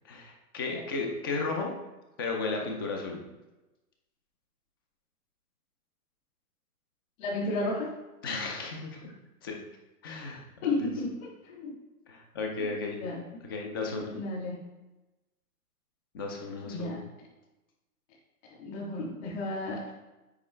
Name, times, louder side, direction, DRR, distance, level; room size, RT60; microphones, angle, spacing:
voice 1, 0.0-1.7 2.2-3.2 8.2-9.1 9.4-9.5 10.0-10.4 10.7-10.9 12.1-13.0 13.4-14.2 16.1-16.9, left 3 dB, 15° left, 2 dB, 0.4 m, -34 dB
voice 2, 7.2-7.9 10.6-11.7 13.0-13.2 14.1-14.6 16.6-17.0 18.6-19.9, left 2 dB, 50° left, -7 dB, 2.5 m, -33 dB
8.5 x 5.2 x 3.2 m, 1.1 s
hypercardioid pair, 140°, 47 cm